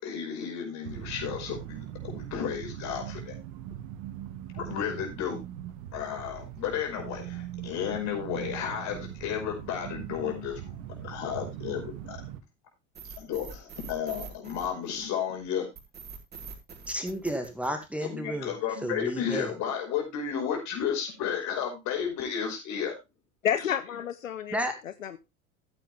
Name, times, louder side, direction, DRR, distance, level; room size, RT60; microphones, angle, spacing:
voice 1, 0.0-3.4 4.5-5.4 5.9-10.7 11.0-12.2 13.2-15.7 18.0-22.9, left 8 dB, 45° left, 2 dB, 5.4 m, -33 dB
sound 1, 0.8-12.4, right 11 dB, 50° right, 1.6 m, -40 dB
sound 2, 12.9-15.2 15.7-18.2, right 5 dB, 25° right, 4.1 m, -44 dB
voice 2, 16.9-18.5 18.8-19.5 24.5-24.7, equal, 5° right, 6 dB, 2.1 m, -32 dB
voice 3, 23.4-25.2, left 9 dB, 80° left, 13 dB, 0.7 m, -30 dB
14.5 x 8.4 x 3.4 m, 0.24 s
figure-of-eight pair, 70°, 39 cm